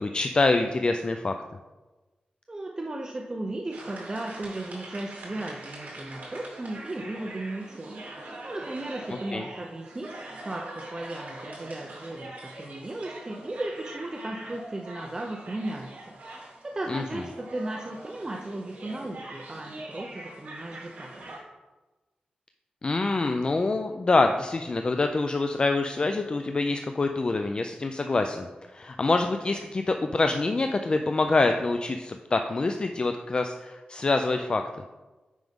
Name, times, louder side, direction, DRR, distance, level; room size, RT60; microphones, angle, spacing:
voice 1, 0.0-1.3 9.3-9.4 16.9-17.0 22.8-34.6, left 3 dB, 35° left, 6 dB, 0.4 m, -25 dB
voice 2, 2.5-16.0 16.3-21.1, right 2 dB, 25° right, 1 dB, 0.6 m, -36 dB
sound 1, 3.7-21.4, right 1 dB, 70° right, 2.2 m, -43 dB
9.2 x 5.2 x 3.6 m, 1.2 s
wide cardioid pair, 120°, 3 cm